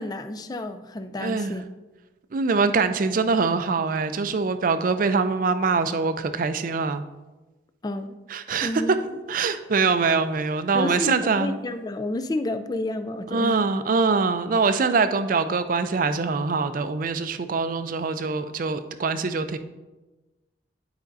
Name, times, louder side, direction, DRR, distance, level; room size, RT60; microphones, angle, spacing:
voice 1, 0.0-1.7 7.8-8.2 8.6-9.2 10.7-13.6, left 1 dB, 20° left, 9 dB, 0.3 m, -30 dB
voice 2, 1.2-1.6 2.3-7.0 8.3-8.7 9.3-11.6 13.3-19.6, right 4 dB, 45° right, 10 dB, 0.4 m, -23 dB
10.5 x 5.1 x 2.6 m, 1.2 s
head